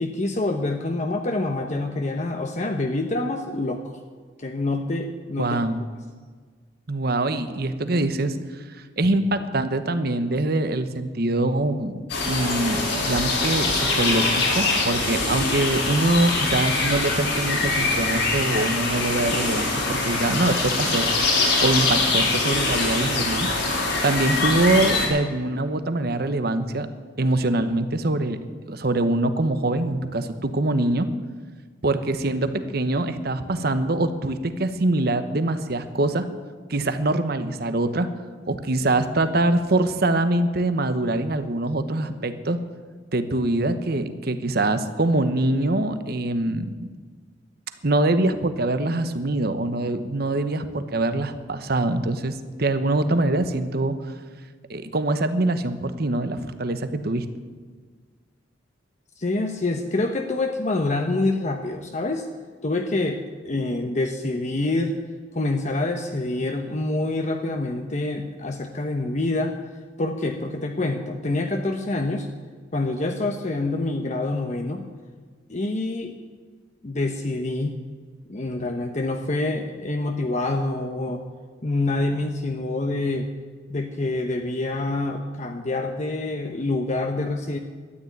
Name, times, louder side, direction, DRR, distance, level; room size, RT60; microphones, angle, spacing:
voice 1, 0.0-4.0 4.4-5.6 59.2-62.3 62.6-64.9 65.3-69.6 70.0-72.3 72.7-74.9 75.5-76.1 76.8-77.8 78.3-81.2 81.6-83.3 83.7-87.6, left 2 dB, 40° left, 4 dB, 0.9 m, -26 dB
voice 2, 5.4-5.8 6.9-8.4 8.8-11.9 12.3-23.5 24.0-26.9 27.2-28.4 28.7-31.1 31.8-36.3 36.7-38.1 38.5-42.6 43.1-46.7 47.8-54.0 54.7-57.3, right 2 dB, 60° right, 10 dB, 1.0 m, -24 dB
sound 1, 12.1-25.1, left 3 dB, 80° left, 4.3 m, -23 dB
12.5 x 9.7 x 9.4 m, 1.5 s
head